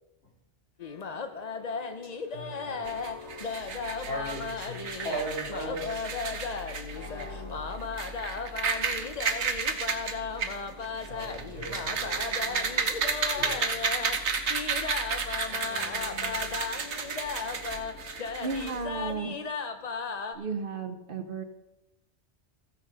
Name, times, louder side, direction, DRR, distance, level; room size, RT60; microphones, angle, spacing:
sound 1, 0.8-20.4, left 5 dB, 40° left, 0.8 m, -36 dB
voice 1, 2.0-3.0 3.4-6.1 6.9-7.7 10.9-12.9 13.4-13.9 15.5-16.5, right 1 dB, 70° left, -4 dB, 4.1 m, -40 dB
sound 2, 2.8-19.1, right 5 dB, 70° right, 1.3 m, -33 dB
voice 2, 18.4-19.4 20.3-21.4, right 4 dB, 55° right, 8 dB, 0.9 m, -33 dB
14.5 x 6.4 x 5.4 m, 0.94 s
omnidirectional pair, 1.2 m